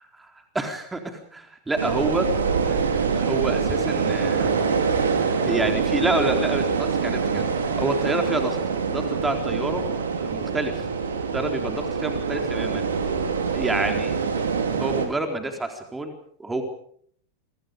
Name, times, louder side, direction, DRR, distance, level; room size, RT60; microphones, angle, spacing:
voice 1, 0.5-2.3 2.7-4.5 5.4-8.6 8.9-9.8 10.2-10.9 11.3-12.9 13.5-14.1 14.8-16.1 16.4-16.6, right 2 dB, 10° right, 4 dB, 4.1 m, -28 dB
sound 1, 1.8-15.1, right 5 dB, 65° right, 4.9 m, -25 dB
29.5 x 25.0 x 5.3 m, 0.63 s
figure-of-eight pair, 90°, 0 cm